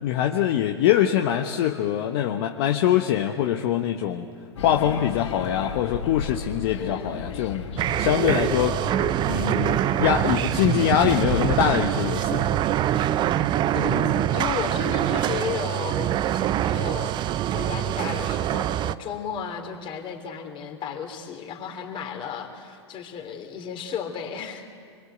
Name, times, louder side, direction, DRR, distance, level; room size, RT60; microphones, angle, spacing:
voice 1, 0.0-4.3 4.6-7.6 8.0-8.8 9.3-12.5, left 10 dB, 55° left, 4 dB, 1.2 m, -23 dB
sound 1, 4.6-16.1, left 7 dB, 75° left, 1.3 m, -37 dB
voice 2, 6.8-7.3 13.7-24.8, left 7 dB, 35° left, 4 dB, 3.4 m, -34 dB
sound 2, 7.8-18.9, right 12 dB, 30° right, 0.6 m, -24 dB
26.0 x 22.5 x 8.1 m, 2.2 s
hypercardioid pair, 105°, 15 cm